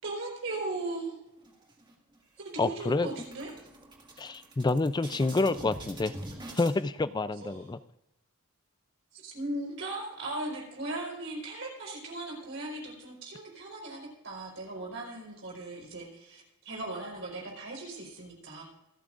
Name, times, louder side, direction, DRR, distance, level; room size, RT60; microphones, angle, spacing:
voice 1, 0.0-1.2 2.4-3.5 7.4-7.6 9.1-18.6, right 2 dB, 60° right, -1 dB, 4.4 m, -38 dB
sound 1, 1.4-2.2 2.5-2.7 3.0-6.7, right 1 dB, 20° right, 1.9 m, -44 dB
voice 2, 2.6-3.1 4.2-6.1 6.5-7.8, left 3 dB, 20° left, 14 dB, 0.4 m, -28 dB
26.0 x 8.8 x 2.5 m, 0.90 s
head